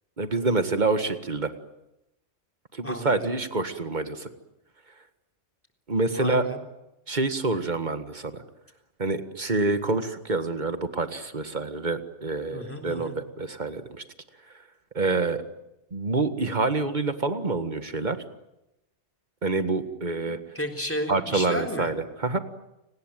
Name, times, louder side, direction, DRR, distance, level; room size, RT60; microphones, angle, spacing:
voice 1, 0.2-1.5 2.7-4.3 5.9-6.4 7.1-8.4 9.0-14.0 14.9-15.4 15.9-18.2 19.4-20.4 21.1-22.4, right 3 dB, 40° right, 10 dB, 1.9 m, -27 dB
voice 2, 2.8-3.3 6.1-6.6 12.5-13.2 19.8-19.9 20.3-21.9, left 1 dB, 10° left, 6 dB, 3.7 m, -33 dB
30.0 x 19.5 x 9.2 m, 0.91 s
omnidirectional pair, 1.2 m